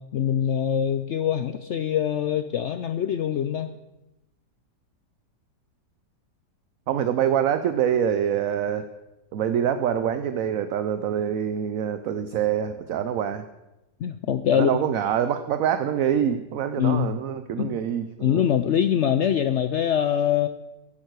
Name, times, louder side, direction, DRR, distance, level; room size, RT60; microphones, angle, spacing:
voice 1, 0.0-3.7 14.0-14.8 16.8-17.2 17.6-17.8 18.2-20.5, left 9 dB, 90° left, 11 dB, 0.6 m, -24 dB
voice 2, 6.9-8.9 9.3-13.4 14.5-18.4, right 9 dB, 65° right, 10 dB, 0.9 m, -25 dB
15.5 x 11.5 x 4.7 m, 0.98 s
omnidirectional pair, 1.8 m